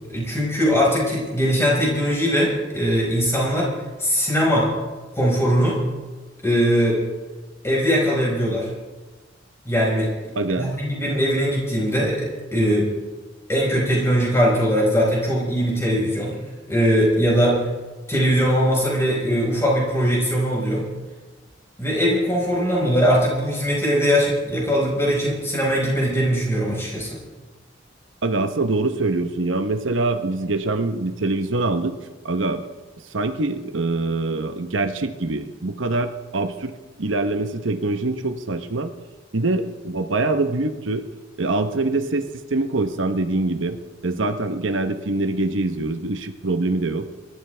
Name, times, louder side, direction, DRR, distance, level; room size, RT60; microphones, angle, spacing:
voice 1, 0.1-3.7 4.0-4.7 5.1-5.8 6.4-7.0 7.6-8.7 9.6-10.1 10.6-12.9 13.5-16.4 16.7-17.6 18.1-20.8 21.8-27.2, equal, 15° left, -4 dB, 4.9 m, -20 dB
voice 2, 10.3-10.7 28.2-31.9 32.2-32.6 33.1-36.7 37.0-38.9 39.3-41.0 41.4-43.8 44.0-47.1, right 2 dB, 80° right, 8 dB, 1.0 m, -24 dB
26.0 x 12.5 x 3.4 m, 1.3 s
head